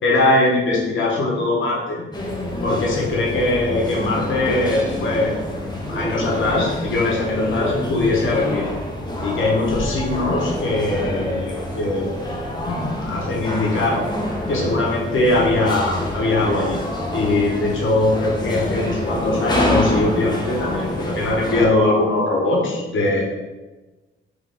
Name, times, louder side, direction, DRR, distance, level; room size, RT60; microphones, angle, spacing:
voice 1, 0.0-2.0 2.6-5.6 5.9-8.7 9.2-12.1 12.7-14.0 14.5-16.8 17.1-23.2, left 2 dB, 75° left, -2 dB, 1.1 m, -21 dB
sound 1, 2.1-21.7, left 1 dB, 20° left, 0.8 m, -27 dB
3.7 x 3.2 x 3.4 m, 1.1 s
cardioid pair, 85°, 20 cm